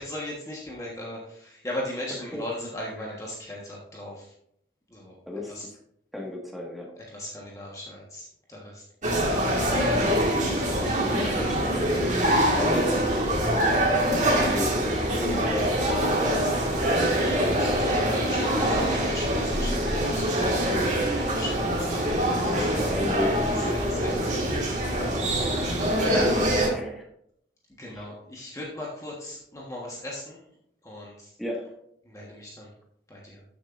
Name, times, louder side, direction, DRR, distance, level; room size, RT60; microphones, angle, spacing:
voice 1, 0.0-4.1 4.9-5.1 5.5-5.6 7.1-8.8 9.4-9.6 16.7-20.9 21.4-22.0 24.0-24.1 25.0-25.1 26.1-26.4 27.8-30.4 30.8-31.3 32.1-32.7 33.1-33.4, left 1 dB, 20° left, -3 dB, 1.3 m, -37 dB
voice 2, 2.1-2.4 3.0-3.2 5.3-5.8 6.1-6.9 9.9-12.2 12.5-13.5 14.1-16.3 21.8-24.3 25.9-27.1 27.9-28.1 31.4-31.7, left 1 dB, ahead, -1 dB, 1.7 m, -34 dB
sound 1, 9.0-26.7, right 1 dB, 45° right, 1.9 m, -24 dB
13.0 x 6.9 x 2.6 m, 0.71 s
head